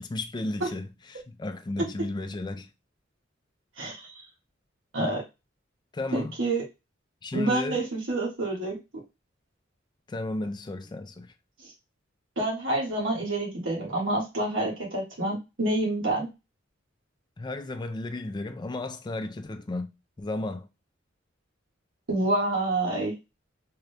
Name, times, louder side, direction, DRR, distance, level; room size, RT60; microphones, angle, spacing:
voice 1, 0.0-2.7 5.9-6.3 7.2-7.8 10.1-11.3 17.4-20.7, left 2 dB, 20° left, 0.4 m, -34 dB
voice 2, 3.8-4.1 4.9-5.2 6.1-6.6 7.3-8.8 11.6-11.7 12.4-16.3 22.1-23.1, right 2 dB, 80° right, 1.5 m, -28 dB
3.7 x 2.2 x 3.3 m
head